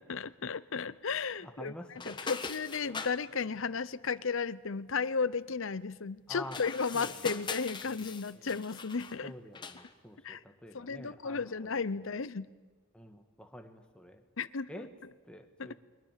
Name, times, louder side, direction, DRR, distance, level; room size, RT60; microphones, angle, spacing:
voice 1, 0.0-1.7 2.0-9.3 10.2-10.4 10.7-12.5 14.4-14.9 15.6-15.7, left 5 dB, 65° left, 17 dB, 0.7 m, -34 dB
voice 2, 1.4-2.2 6.3-6.6 6.9-7.1 8.4-8.5 9.2-11.5 12.9-14.2 14.7-14.9 15.3-15.7, equal, 5° left, 5 dB, 1.6 m, -48 dB
sound 1, 2.0-3.2 6.4-9.2 9.5-9.9, left 4 dB, 20° left, 1.2 m, -41 dB
29.5 x 23.0 x 7.5 m, 1.4 s
head